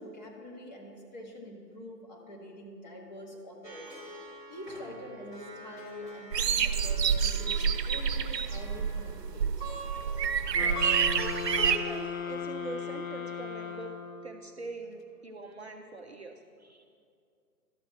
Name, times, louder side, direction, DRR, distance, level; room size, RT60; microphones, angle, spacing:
voice 1, 0.0-9.6, left 1 dB, 25° left, -2 dB, 1.5 m, -45 dB
Plucked string instrument, 3.6-14.0, right 2 dB, 5° left, 1.1 m, -45 dB
sound 1, 6.3-11.8, right 7 dB, 75° right, 0.7 m, -28 dB
sound 2, 10.5-14.4, left 7 dB, 55° left, 0.8 m, -37 dB
voice 2, 10.6-11.0 11.5-13.9 14.2-16.8, right 3 dB, 45° right, 2 dB, 0.5 m, -43 dB
12.5 x 7.8 x 4.4 m, 2.3 s
hypercardioid pair, 150°, 49 cm